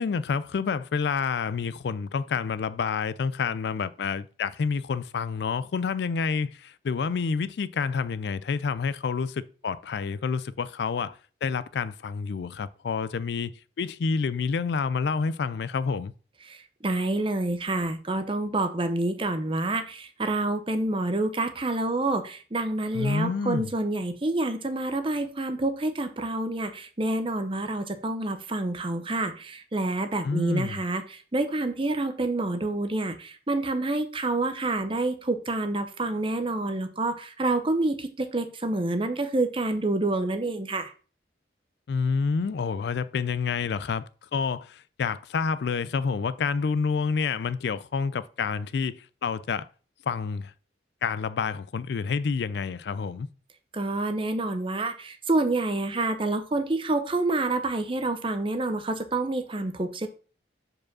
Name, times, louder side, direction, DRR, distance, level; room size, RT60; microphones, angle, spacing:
voice 1, 0.0-13.5 13.8-16.1 22.9-23.7 30.2-30.8 41.9-49.7 50.1-50.5 51.0-53.3, left 5 dB, 60° left, 0.3 m, -28 dB
voice 2, 16.8-40.9 53.7-60.1, right 2 dB, 30° right, 0.7 m, -28 dB
4.8 x 4.8 x 6.0 m
head